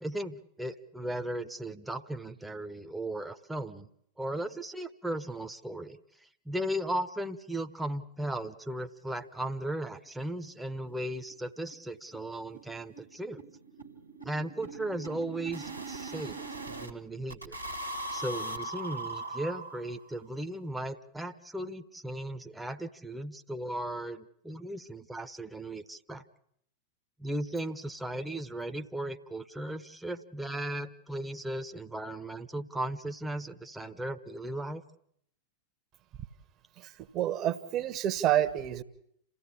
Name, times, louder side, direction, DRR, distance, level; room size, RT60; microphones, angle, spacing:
voice 1, 0.0-3.9 4.2-13.4 14.2-16.4 16.7-17.6 18.1-26.2 27.2-34.8, right 1 dB, 5° right, 8 dB, 1.1 m, -36 dB
sound 1, 10.1-10.2 10.5-10.6 10.9-11.0 11.3-11.4 11.7-16.9 17.3-20.1, right 2 dB, 85° right, 1.7 m, -40 dB
voice 2, 36.8-38.8, right 11 dB, 35° right, 12 dB, 1.4 m, -29 dB
28.0 x 15.5 x 8.6 m, 0.73 s
figure-of-eight pair, 90°, 0 cm